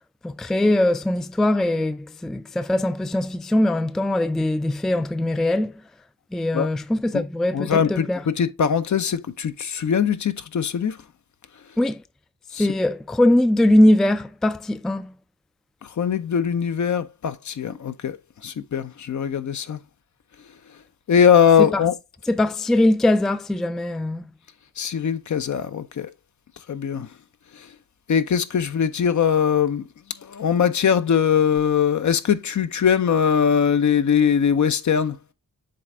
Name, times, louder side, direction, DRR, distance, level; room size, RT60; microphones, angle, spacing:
voice 1, 0.2-5.7 6.3-8.2 11.8-12.0 12.6-15.1 21.6-21.8 22.3-24.2, left 1 dB, ahead, 0.3 m, -21 dB
voice 2, 7.5-11.0 12.5-12.7 16.0-18.2 18.4-19.8 21.1-21.9 24.8-26.1 26.7-27.1 28.1-29.9 30.3-35.2, left 7 dB, 55° left, 0.7 m, -21 dB
7.8 x 3.3 x 3.6 m
cardioid pair, 70°, 35 cm